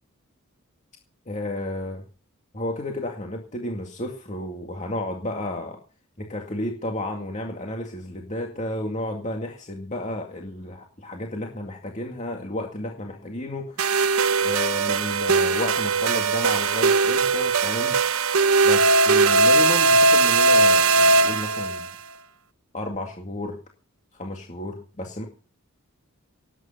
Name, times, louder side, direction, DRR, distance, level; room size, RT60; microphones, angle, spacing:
voice 1, 1.3-2.0 2.5-5.8 6.2-13.9 14.4-18.0 18.6-21.9 22.7-23.6 24.1-25.3, left 1 dB, 35° left, 1 dB, 2.2 m, -32 dB
sound 1, 13.8-21.9, right 3 dB, 70° right, 0.9 m, -19 dB
18.0 x 9.7 x 5.7 m, 0.39 s
head